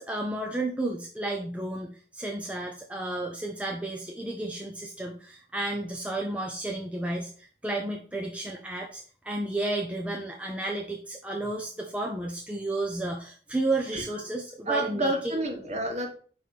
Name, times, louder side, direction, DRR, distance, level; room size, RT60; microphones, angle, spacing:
voice 1, 0.0-15.4, right 2 dB, 10° right, 0 dB, 0.7 m, -32 dB
voice 2, 14.7-16.1, right 2 dB, 40° right, 3 dB, 1.7 m, -29 dB
5.3 x 4.8 x 6.0 m, 0.42 s
head